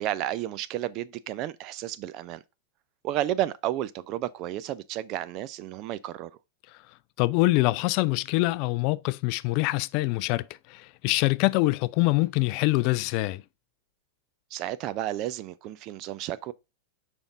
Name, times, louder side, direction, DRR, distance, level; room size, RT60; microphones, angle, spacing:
voice 1, 0.0-2.4 3.0-6.3 14.5-16.5, right 13 dB, 40° right, 0.6 m, -32 dB
voice 2, 7.2-13.4, left 21 dB, 45° left, 0.3 m, -24 dB
7.0 x 5.3 x 3.8 m
figure-of-eight pair, 90°, 0 cm